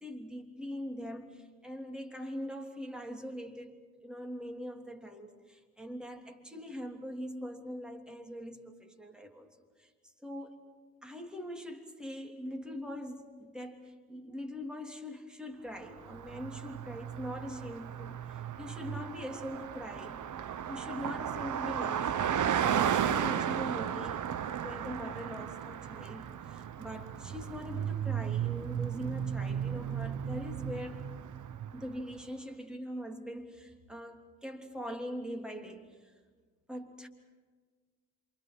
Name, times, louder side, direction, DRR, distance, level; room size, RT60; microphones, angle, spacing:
voice 1, 0.0-9.5 9.8-9.9 10.2-10.6 11.0-24.2 24.6-31.0 31.7-36.1 36.7-37.1, equal, ahead, 4 dB, 3.2 m, -42 dB
Car passing by, 15.9-32.0, right 9 dB, 50° right, 1.1 m, -34 dB
27.5 x 25.0 x 6.2 m, 1.5 s
hypercardioid pair, 55°, 40 cm